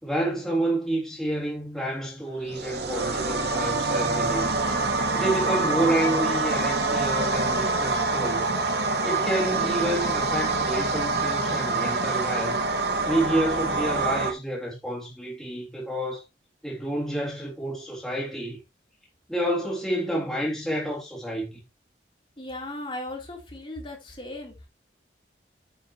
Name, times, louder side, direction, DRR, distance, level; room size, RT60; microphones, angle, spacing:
voice 1, 0.0-4.5 5.1-8.5 9.0-12.6 13.1-16.2 16.6-18.6 19.3-21.6, right 1 dB, 5° left, 3.2 m, -29 dB
sound 1, 2.4-14.3, right 3 dB, 65° right, 2.3 m, -26 dB
voice 2, 22.4-24.7, left 1 dB, 30° left, 3.7 m, -37 dB
9.8 x 9.1 x 3.2 m
head